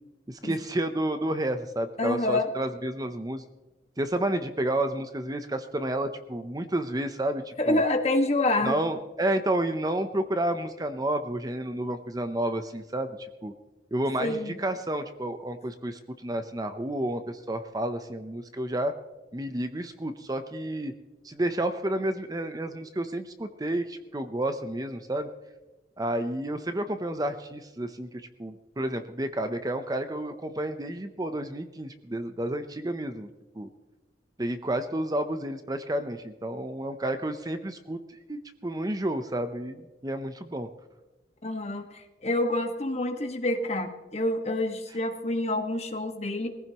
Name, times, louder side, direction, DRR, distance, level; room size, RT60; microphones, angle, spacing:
voice 1, 0.3-3.4 4.0-7.8 8.6-13.5 13.9-18.9 19.3-20.9 21.2-25.3 26.0-33.3 33.5-33.7 34.4-40.7, right 1 dB, 20° right, 8 dB, 0.7 m, -30 dB
voice 2, 2.0-2.5 7.6-8.8 14.2-14.5 41.4-46.5, left 2 dB, 40° left, 4 dB, 1.6 m, -27 dB
21.5 x 15.5 x 3.0 m, 1.1 s
head